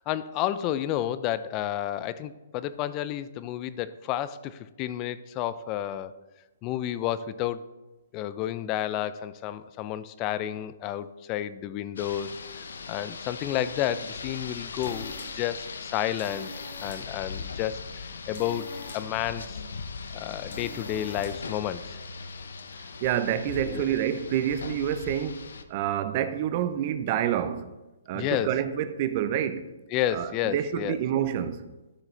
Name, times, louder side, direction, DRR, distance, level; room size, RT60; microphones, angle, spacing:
voice 1, 0.1-6.1 6.6-7.6 8.1-16.5 16.8-17.8 18.3-18.7 18.9-19.6 20.1-22.0 23.7-23.8 28.1-28.5 29.9-31.0, left 12 dB, 30° left, 0.4 m, -31 dB
Rain, 12.0-25.6, left 5 dB, 80° left, 0.6 m, -39 dB
sound 1, 14.5-21.6, left 2 dB, 60° left, 1.8 m, -46 dB
voice 2, 23.0-27.7 28.1-29.7 30.1-31.7, right 10 dB, 40° right, 0.7 m, -28 dB
13.0 x 4.8 x 3.3 m
hypercardioid pair, 145°, 0 cm